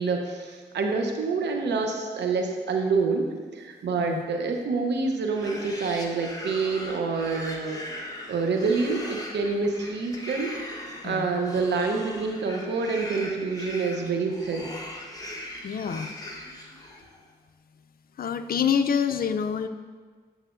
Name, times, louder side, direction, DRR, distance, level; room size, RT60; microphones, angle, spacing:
voice 1, 0.0-3.3 3.5-8.0 8.3-10.5 11.0-14.7, right 4 dB, 80° right, 3 dB, 0.8 m, -27 dB
sound 1, 5.2-17.2, left 1 dB, 20° left, 1.2 m, -40 dB
voice 2, 11.0-11.4 15.6-16.1 18.2-19.7, left 7 dB, 60° left, 9 dB, 0.4 m, -27 dB
8.9 x 6.3 x 2.5 m, 1.5 s
cardioid pair, 50°, 18 cm